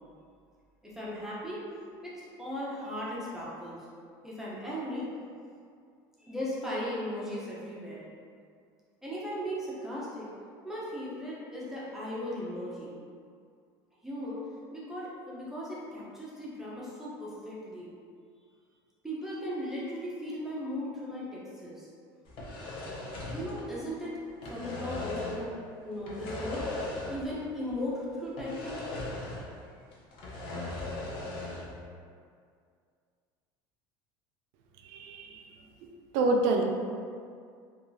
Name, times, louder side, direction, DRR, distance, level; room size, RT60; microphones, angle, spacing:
voice 1, 0.8-1.6 2.0-3.8 4.2-5.1 6.2-8.0 9.0-10.3 10.6-12.9 14.0-17.9 19.0-21.9 23.3-25.5 25.8-26.7 27.1-28.8, equal, 5° right, -8 dB, 0.6 m, -37 dB
sound 1, 22.3-24.0 24.3-25.5 26.0-27.4 27.7-27.8 28.4-29.6 29.9-31.8, left 2 dB, 55° left, 0.5 m, -38 dB
voice 2, 34.8-35.4 36.1-36.6, right 2 dB, 75° right, 2 dB, 0.4 m, -27 dB
2.7 x 2.3 x 2.6 m, 2.2 s
supercardioid pair, 130°, 10 cm